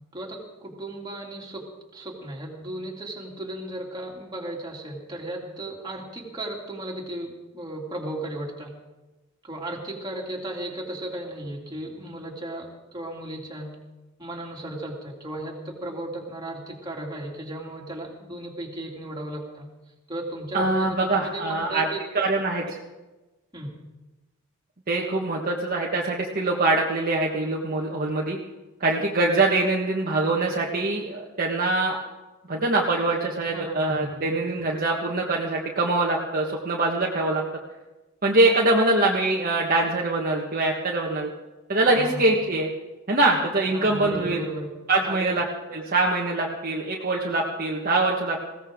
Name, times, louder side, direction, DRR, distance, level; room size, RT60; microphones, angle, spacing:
voice 1, 0.1-8.7 9.4-13.7 14.2-19.7 20.1-21.0 21.3-22.0 23.5-23.7 33.5-34.2 41.8-42.2 43.7-44.7 45.0-45.3, right 1 dB, 20° right, -2 dB, 2.7 m, -35 dB
voice 2, 20.5-21.9 22.1-22.8 24.9-28.4 28.8-32.0 32.5-37.4 38.2-41.3 41.7-42.7 43.1-44.4 44.9-45.4 45.7-48.4, right 2 dB, 45° right, -2 dB, 1.4 m, -23 dB
20.0 x 16.5 x 3.7 m, 1.1 s
head